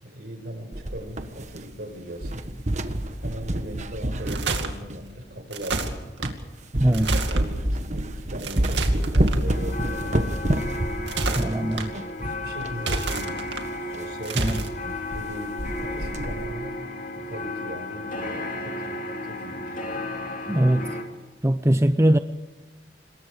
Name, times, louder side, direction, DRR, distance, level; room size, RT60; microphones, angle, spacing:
voice 1, 0.0-2.5 3.2-6.0 6.8-10.7 11.3-11.6 12.2-16.8 17.1-19.8, right 1 dB, 60° right, 6 dB, 5.1 m, -39 dB
sound 1, 0.7-1.9 2.2-5.1 5.7-5.8 6.2-6.4 6.7-12.8 13.1-13.2 13.4-13.5 13.9-14.1 14.5-14.7 14.9-15.3 15.6-16.5, right 1 dB, 40° right, 1.4 m, -28 dB
sound 2, 4.1-4.7 5.5-6.3 6.9-7.5 8.4-9.4 10.9-11.9 12.7-13.6 14.2-14.7, right 3 dB, 80° right, 2.4 m, -29 dB
voice 2, 6.8-7.1 11.4-11.9 14.4-14.6 20.5-20.9 21.4-22.2, right 1 dB, 15° right, 9 dB, 0.6 m, -21 dB
sound 3, 9.5-21.0, left 2 dB, 45° left, 2.8 m, -34 dB
26.5 x 21.0 x 5.1 m, 1.2 s
head